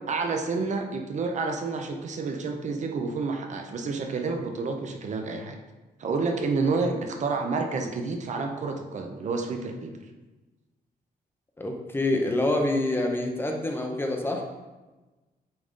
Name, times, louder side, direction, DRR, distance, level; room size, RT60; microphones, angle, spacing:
voice 1, 0.1-5.6 6.0-9.9, right 4 dB, 50° right, 4 dB, 0.7 m, -29 dB
voice 2, 11.6-14.4, left 2 dB, 15° left, 2 dB, 0.6 m, -26 dB
8.7 x 3.8 x 3.7 m, 1.2 s
wide cardioid pair, 160°, 16 cm